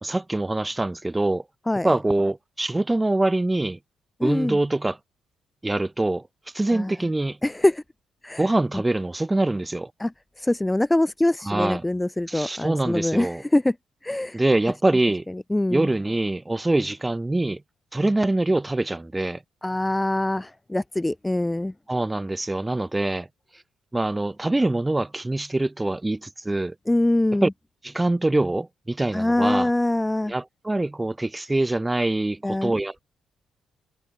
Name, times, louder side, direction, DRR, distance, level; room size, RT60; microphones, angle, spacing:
voice 1, 0.0-1.4 1.8-3.8 4.2-5.0 5.6-6.2 6.5-7.4 8.4-9.9 11.4-11.8 12.3-13.4 14.3-15.2 15.7-17.6 17.9-19.4 21.9-23.3 23.9-26.7 27.4-27.5 27.8-29.7 30.3-33.0, right 2 dB, 15° right, 4.4 m, -24 dB
voice 2, 4.2-4.6 6.7-6.9 7.4-7.8 8.2-8.4 8.7-8.8 10.0-10.1 10.4-13.7 14.0-14.4 15.5-15.9 19.6-21.7 26.9-27.5 29.1-30.3 32.4-32.7, left 1 dB, 10° left, 3.4 m, -23 dB
cardioid pair, 90°, 0 cm